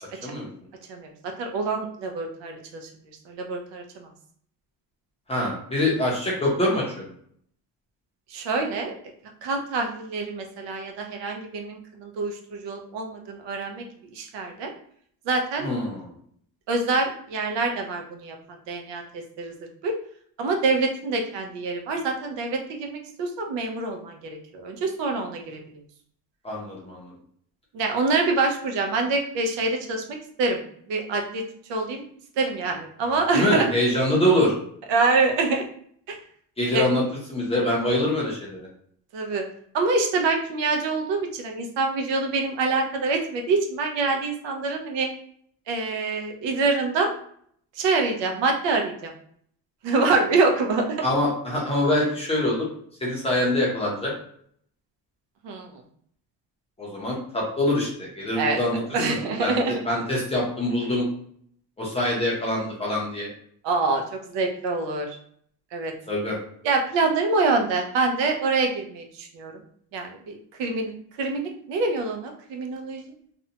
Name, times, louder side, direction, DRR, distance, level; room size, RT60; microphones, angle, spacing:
voice 1, 0.9-2.9 3.3-4.1 8.3-8.9 9.4-13.9 14.1-14.7 15.3-15.7 16.7-18.4 18.7-19.5 19.8-20.0 20.4-25.6 27.7-30.6 30.9-31.4 31.7-32.0 32.4-33.7 34.9-35.6 36.1-36.2 36.7-36.9 39.1-39.5 39.7-45.1 45.7-47.1 47.8-49.1 49.8-51.0 55.4-55.8 58.3-58.6 58.9-59.7 63.6-65.2 65.7-65.9 66.6-69.6 69.9-70.9 71.2-73.1, right 3 dB, 75° right, 3 dB, 0.6 m, -25 dB
voice 2, 5.3-7.1 15.6-16.1 26.4-27.1 33.3-34.5 36.6-37.0 37.3-38.7 51.0-52.7 53.0-54.1 56.8-58.8 59.1-61.1 61.8-63.3 66.1-66.4, left 1 dB, 15° left, -4 dB, 0.5 m, -24 dB
2.6 x 2.1 x 2.7 m, 0.63 s
cardioid pair, 165°, 44 cm